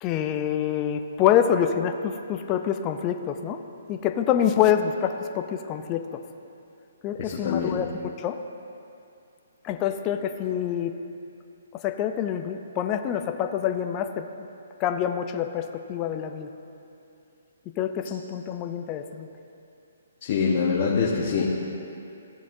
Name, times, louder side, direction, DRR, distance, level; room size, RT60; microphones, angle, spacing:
voice 1, 0.0-3.6 3.9-6.2 7.0-8.4 9.6-10.9 11.7-14.5 14.8-16.5 17.8-19.3, left 9 dB, 25° left, 7 dB, 0.5 m, -26 dB
voice 2, 7.2-7.8 20.2-21.5, left 5 dB, 45° left, -4 dB, 1.2 m, -24 dB
15.0 x 7.1 x 2.7 m, 2.6 s
hypercardioid pair, 145°, 0 cm